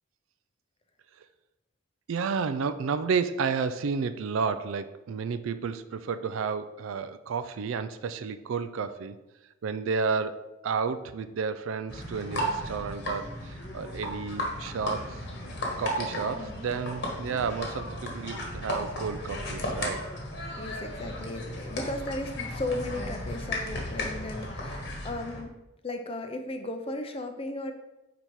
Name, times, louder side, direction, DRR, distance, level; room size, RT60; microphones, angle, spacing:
voice 1, 2.1-9.2 9.6-15.2 15.8-20.1, right 5 dB, 70° right, 12 dB, 0.4 m, -31 dB
sound 1, 11.9-25.4, left 1 dB, 55° left, 1.3 m, -35 dB
voice 2, 16.3-16.7 20.6-25.6 25.8-27.7, left 2 dB, 25° left, 7 dB, 0.5 m, -36 dB
5.1 x 4.2 x 4.6 m, 0.99 s
head